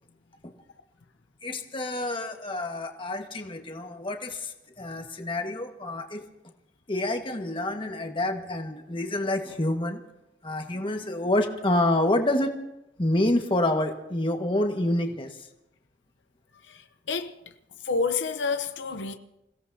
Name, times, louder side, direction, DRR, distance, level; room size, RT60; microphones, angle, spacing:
voice 1, 1.4-6.2 6.9-10.0 10.4-12.5 13.0-15.4, left 1 dB, 30° left, 1.5 m, -27 dB
voice 2, 16.6-17.4 17.8-19.1, left 4 dB, 85° left, 0.8 m, -29 dB
28.0 x 16.5 x 2.8 m
head